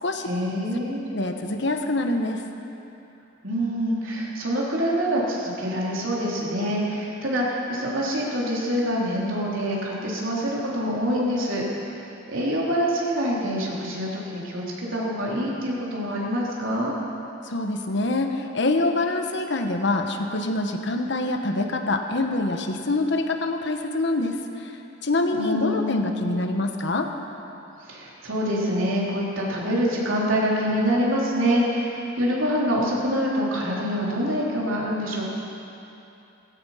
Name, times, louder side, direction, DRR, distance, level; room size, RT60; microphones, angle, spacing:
voice 1, 0.3-1.0 3.4-11.6 12.3-17.0 25.3-26.3 27.9-35.2, equal, 75° right, -4 dB, 3.5 m, -25 dB
voice 2, 1.1-2.4 17.4-24.4 24.6-24.7 25.0-27.1, left 2 dB, 60° left, 5 dB, 1.2 m, -25 dB
16.0 x 15.5 x 5.8 m, 2.8 s
head